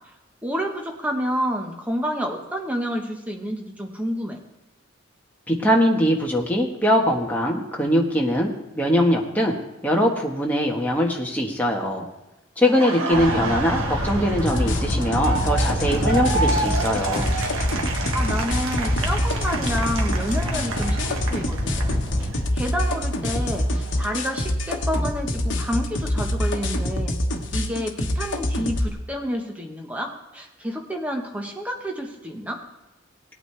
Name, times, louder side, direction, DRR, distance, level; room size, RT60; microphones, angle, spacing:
voice 1, 0.4-4.4 12.7-13.6 18.1-27.2 27.5-32.6, equal, 5° right, 2 dB, 1.2 m, -29 dB
voice 2, 5.5-9.5 9.8-12.1 12.6-17.3, equal, 10° left, -1 dB, 1.3 m, -22 dB
Laughter, 12.6-22.4 22.8-24.8, right 3 dB, 85° right, 1.3 m, -30 dB
sound 1, 13.1-22.3, left 1 dB, 25° right, 2.4 m, -30 dB
sound 2, 14.5-28.9, left 1 dB, 60° left, 1.2 m, -25 dB
18.0 x 9.1 x 3.3 m, 1.0 s
head